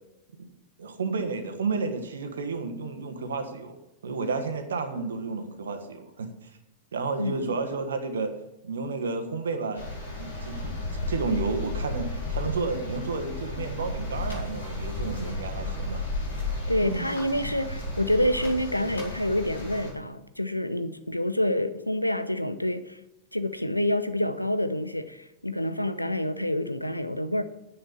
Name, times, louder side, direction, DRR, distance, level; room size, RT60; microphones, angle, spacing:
voice 1, 0.8-6.5 6.9-8.3 8.6-9.9 10.2-10.8 11.1-16.1 16.8-17.1, right 4 dB, 65° right, 1.6 m, -31 dB
voice 2, 7.2-7.6 16.7-23.0 23.3-27.4, left 1 dB, 90° left, 0.7 m, -27 dB
sound 1, 9.7-19.9, left 2 dB, 70° left, 5.2 m, -33 dB
10.0 x 7.8 x 6.9 m
figure-of-eight pair, 90°, 0 cm